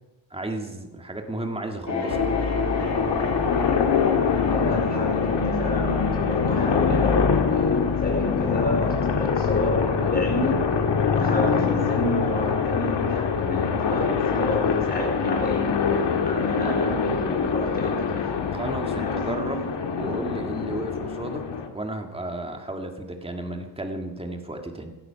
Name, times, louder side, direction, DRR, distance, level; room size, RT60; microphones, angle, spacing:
voice 1, 0.3-2.3 18.5-19.7 20.0-21.4 21.7-24.9, right 1 dB, 10° right, 4 dB, 1.8 m, -33 dB
sound 1, 1.9-9.2, left 4 dB, 40° left, 3.4 m, -32 dB
sound 2, 2.1-21.7, left 6 dB, 65° left, 2.0 m, -24 dB
voice 2, 4.5-10.7 11.1-15.7 16.2-18.6 19.0-19.4, left 1 dB, 20° left, -1 dB, 4.6 m, -29 dB
18.5 x 12.0 x 5.7 m, 1.1 s
wide cardioid pair, 155°, 45 cm